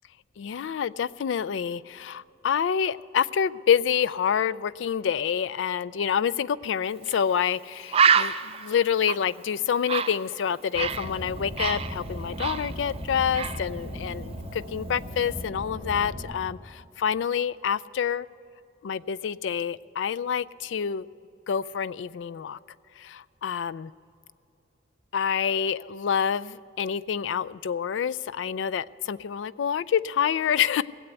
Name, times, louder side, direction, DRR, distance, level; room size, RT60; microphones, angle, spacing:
voice 1, 0.4-8.3 8.6-14.3 14.7-16.6 17.0-18.3 18.8-21.1 21.5-22.6 23.4-23.9 25.1-30.8, left 8 dB, 75° left, 18 dB, 0.3 m, -27 dB
Bird, 7.1-7.2 7.5-7.6 7.9-11.1 11.4-13.0 13.3-13.6, right 6 dB, 30° right, 0.4 m, -26 dB
Car, 10.7-16.2, equal, 50° left, 4.5 m, -37 dB
17.5 x 8.0 x 8.0 m, 2.6 s
head